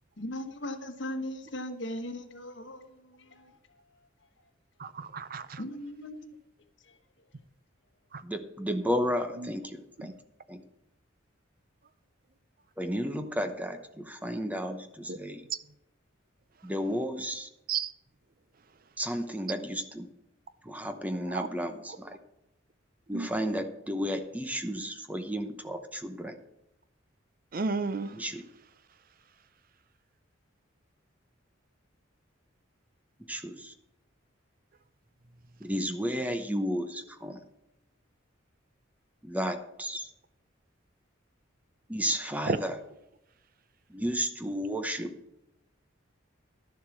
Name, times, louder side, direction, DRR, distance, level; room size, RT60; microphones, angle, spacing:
voice 1, 0.2-3.8 5.2-6.4 6.8-7.0, left 1 dB, 65° left, 1.4 m, -39 dB
voice 2, 4.8-5.6 15.1-15.2 17.7-17.9 21.3-21.5 23.1-23.3 27.5-28.1 42.5-42.6, right 4 dB, 45° right, 0.6 m, -31 dB
voice 3, 8.2-10.1 10.5-10.6 12.8-15.4 16.6-17.5 19.0-20.1 20.6-22.2 23.1-26.4 28.1-28.4 33.3-33.7 35.6-37.4 39.2-40.1 41.9-42.8 43.9-45.1, equal, 10° right, 0.8 m, -33 dB
11.5 x 7.2 x 6.2 m
head